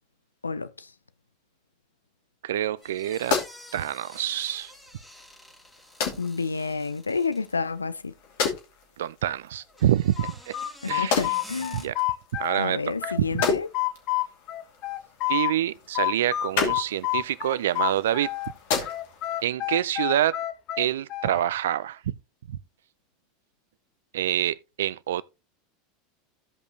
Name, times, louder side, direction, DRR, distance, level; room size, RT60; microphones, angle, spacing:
voice 1, 0.4-0.9 6.2-8.1 10.8-11.9 12.6-13.7, left 4 dB, 90° left, 0.4 m, -30 dB
voice 2, 2.4-3.4 3.7-4.7 9.0-10.6 10.9-11.2 11.7-11.9 12.3-13.3 15.3-18.3 19.4-20.4 20.8-22.1 22.5-22.6 24.1-25.2, right 12 dB, 70° right, 0.4 m, -26 dB
sound 1, 2.8-19.4, left 5 dB, 65° left, 2.7 m, -34 dB
sound 2, 2.8-7.6 9.6-11.9, left 1 dB, 5° left, 2.5 m, -48 dB
sound 3, 10.2-12.7 13.0-15.5 15.9-18.5 18.8-21.5, left 17 dB, 50° left, 0.9 m, -28 dB
15.5 x 5.3 x 2.7 m
figure-of-eight pair, 80°, 0 cm